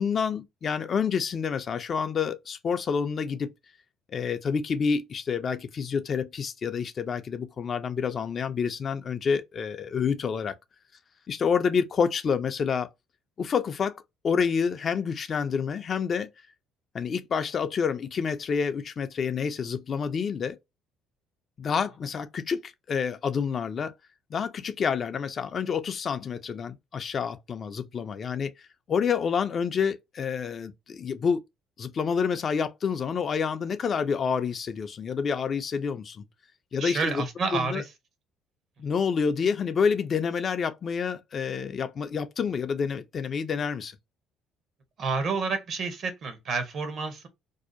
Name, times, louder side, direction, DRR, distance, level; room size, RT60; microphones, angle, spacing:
voice 1, 0.0-3.5 4.1-10.5 11.3-12.9 13.4-16.3 16.9-20.6 21.6-23.9 24.3-28.5 28.9-31.4 31.8-36.2 36.7-37.2 37.5-37.8 38.8-44.0, left 6 dB, 40° left, 0.4 m, -28 dB
voice 2, 36.8-37.9 45.0-47.3, right 4 dB, 50° right, 0.8 m, -29 dB
2.6 x 2.0 x 2.5 m
cardioid pair, 100°, 0 cm